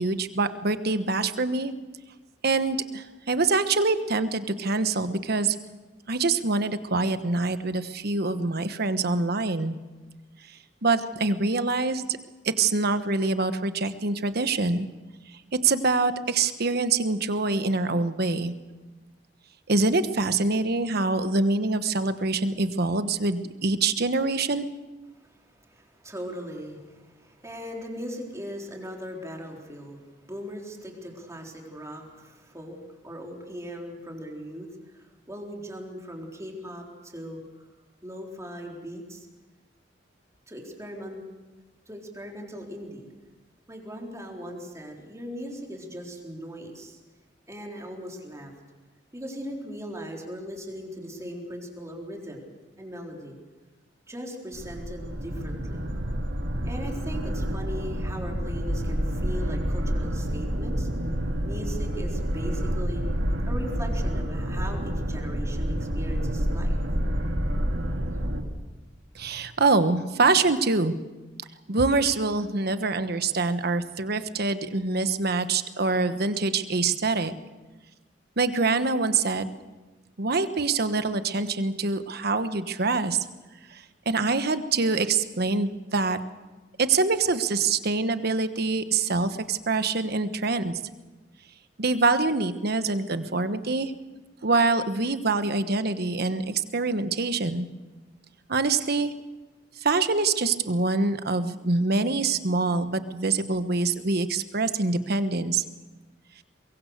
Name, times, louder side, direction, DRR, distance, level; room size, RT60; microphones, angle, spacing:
voice 1, 0.0-1.7 2.4-5.6 6.1-9.8 10.5-10.6 10.8-12.2 12.4-14.9 15.5-18.5 19.7-24.7 69.1-70.9 71.7-77.3 78.4-79.5 80.2-83.2 83.7-86.2 86.8-90.8 91.8-93.9 94.4-97.7 98.5-99.1 99.8-105.6, right 3 dB, 55° right, 11 dB, 1.2 m, -25 dB
voice 2, 25.1-32.8 33.0-34.7 34.9-37.4 38.0-39.3 40.5-41.2 41.9-43.1 43.7-47.0 47.5-48.5 49.1-52.4 52.8-53.4 54.1-55.8 56.6-60.9 61.4-63.0 63.5-66.8, equal, 15° right, 0 dB, 3.9 m, -39 dB
sound 1, 54.5-68.4, equal, 80° right, 2.6 m, -28 dB
23.0 x 23.0 x 6.6 m, 1.2 s
head